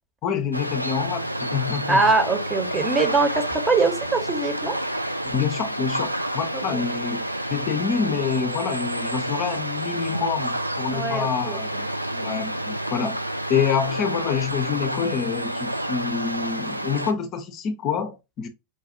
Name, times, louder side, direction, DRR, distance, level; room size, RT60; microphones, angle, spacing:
voice 1, 0.2-2.0 5.2-11.7 12.2-13.2 13.5-18.5, left 7 dB, 35° left, 0.5 m, -27 dB
sound 1, 0.5-17.1, right 1 dB, 90° right, 0.3 m, -29 dB
voice 2, 1.9-4.8 6.7-6.8 10.9-11.9 12.1-12.4, right 3 dB, 15° right, 0.9 m, -23 dB
5.1 x 2.4 x 2.6 m
figure-of-eight pair, 90°, 0 cm